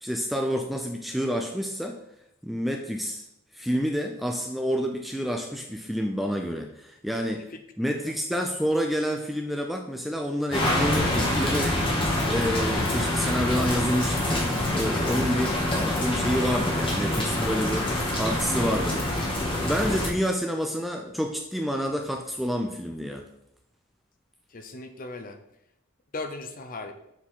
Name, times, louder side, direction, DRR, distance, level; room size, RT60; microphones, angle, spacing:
voice 1, 0.0-2.0 2.4-3.2 3.5-7.5 7.8-11.8 12.2-15.5 15.8-19.2 19.6-23.2, equal, ahead, 3 dB, 0.4 m, -28 dB
sound 1, 10.5-20.1, left 1 dB, 25° left, 1.2 m, -26 dB
voice 2, 24.5-25.4 26.1-26.9, left 3 dB, 40° left, 7 dB, 0.6 m, -37 dB
7.2 x 4.3 x 3.7 m, 0.79 s
head